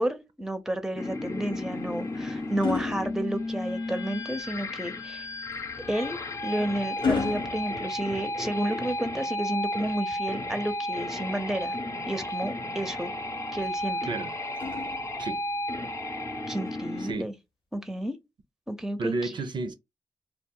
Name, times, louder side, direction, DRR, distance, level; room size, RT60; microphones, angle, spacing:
voice 1, 0.0-5.3 5.9-11.8 12.1-13.1 13.5-14.0 16.5-17.3 17.7-18.1 18.7-19.3, right 1 dB, 5° right, 0.6 m, -31 dB
sound 1, 1.0-17.1, left 1 dB, 35° left, 0.7 m, -33 dB
sound 2, 1.5-3.9 5.5-8.7 10.5-11.6 13.6-15.5 16.7-16.9, left 5 dB, 75° left, 0.5 m, -36 dB
voice 2, 19.0-19.7, right 3 dB, 60° right, 0.4 m, -31 dB
2.3 x 2.0 x 3.7 m
cardioid pair, 40°, 9 cm